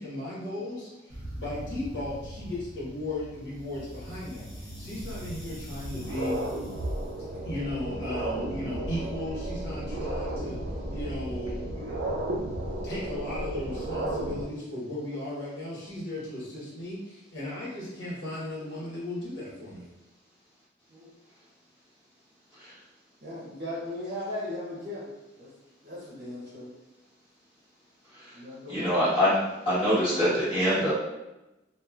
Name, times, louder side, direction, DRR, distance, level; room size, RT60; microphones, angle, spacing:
voice 1, 0.0-6.4 7.4-10.6 10.9-12.4 12.8-19.9, left 1 dB, 65° left, -7 dB, 1.3 m, -36 dB
sound 1, 1.1-12.8, equal, ahead, 1.0 m, -43 dB
sound 2, 5.0-5.1 5.6-14.4, right 1 dB, 80° right, 0.5 m, -33 dB
voice 2, 23.2-25.1 25.4-25.5 25.8-26.7 28.3-29.0, left 1 dB, 40° right, -6 dB, 0.8 m, -37 dB
voice 3, 28.7-30.9, equal, 30° left, -13 dB, 1.4 m, -25 dB
2.9 x 2.5 x 2.4 m, 0.98 s
head